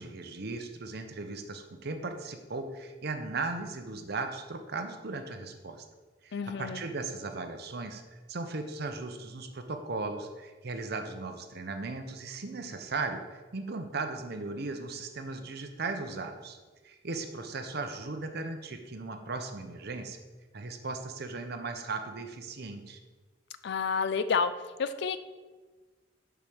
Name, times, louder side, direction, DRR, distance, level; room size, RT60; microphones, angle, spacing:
voice 1, 0.0-5.8 6.2-16.6 16.8-20.2 20.5-23.0, right 3 dB, 60° right, 7 dB, 0.8 m, -37 dB
voice 2, 6.3-6.8 23.6-24.5 24.8-25.2, left 5 dB, 65° left, 12 dB, 0.4 m, -29 dB
6.8 x 4.9 x 6.0 m, 1.3 s
head